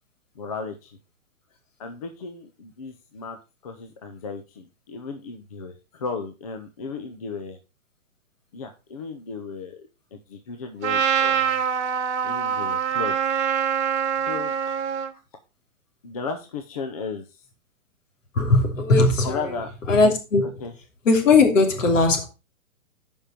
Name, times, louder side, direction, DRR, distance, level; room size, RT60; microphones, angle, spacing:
voice 1, 0.4-1.0 1.8-7.6 8.5-11.7 12.2-13.2 14.3-14.5 16.0-17.4 19.2-19.7 20.6-20.7, left 4 dB, 25° left, 0.7 m, -35 dB
Trumpet, 10.8-15.1, right 7 dB, 55° right, 1.2 m, -24 dB
voice 2, 18.3-19.4 19.9-20.5 21.0-22.2, left 3 dB, 65° left, 3.0 m, -18 dB
9.6 x 5.4 x 4.3 m
hypercardioid pair, 170°, 41 cm